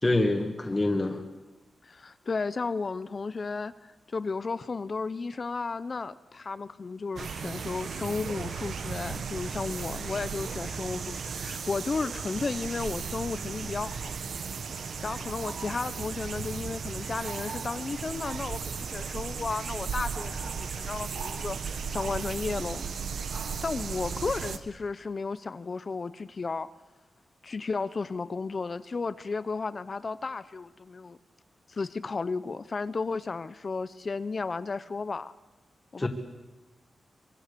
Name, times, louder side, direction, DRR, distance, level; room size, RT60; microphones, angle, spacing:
voice 1, 0.0-1.2 36.0-36.1, left 2 dB, 20° left, 1 dB, 1.9 m, -26 dB
voice 2, 1.8-3.7 4.1-14.1 15.0-22.8 23.6-26.7 27.4-31.2 31.7-35.3 35.9-36.1, left 4 dB, 40° left, 14 dB, 0.7 m, -33 dB
sound 1, 7.2-24.6, right 6 dB, 75° right, 1.4 m, -35 dB
24.5 x 24.0 x 6.9 m, 1.1 s
wide cardioid pair, 125°, 0 cm